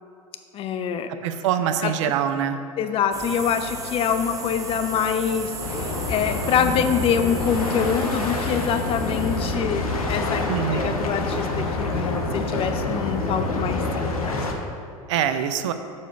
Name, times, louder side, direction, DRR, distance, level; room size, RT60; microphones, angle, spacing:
voice 1, 0.5-1.1 1.8-2.1 2.8-14.4, left 7 dB, 30° left, 9 dB, 0.5 m, -25 dB
voice 2, 1.2-2.6 10.5-11.0 15.1-15.7, right 9 dB, 55° right, 9 dB, 0.5 m, -24 dB
sound 1, 3.1-9.5, right 3 dB, 20° right, 0.8 m, -35 dB
sound 2, 5.6-14.5, left 2 dB, 75° left, 0.9 m, -27 dB
6.6 x 4.9 x 5.5 m, 2.4 s
figure-of-eight pair, 80°, 18 cm